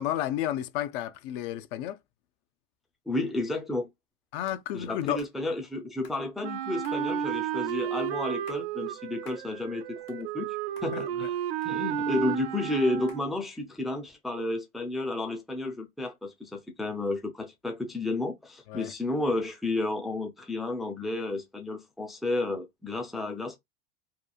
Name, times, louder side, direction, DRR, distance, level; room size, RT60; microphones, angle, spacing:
voice 1, 0.0-2.0 4.3-5.2 10.9-11.0 18.7-18.9, left 12 dB, 65° left, 0.4 m, -31 dB
voice 2, 3.1-3.9 4.7-10.6 10.8-11.4 11.6-23.6, left 2 dB, ahead, 0.3 m, -32 dB
sound 1, 4.5-4.6 5.2-5.4 6.0-6.2 6.8-7.0 7.7-7.8 8.3-8.7 9.2-9.5 9.9-10.5 10.8-10.9 11.6-12.2 13.1-13.3, left 6 dB, 90° left, 1.0 m, -53 dB
Wind instrument woodwind instrument, 6.4-13.4, right 9 dB, 90° right, 0.5 m, -32 dB
2.9 x 2.4 x 2.2 m
supercardioid pair, 135°, 29 cm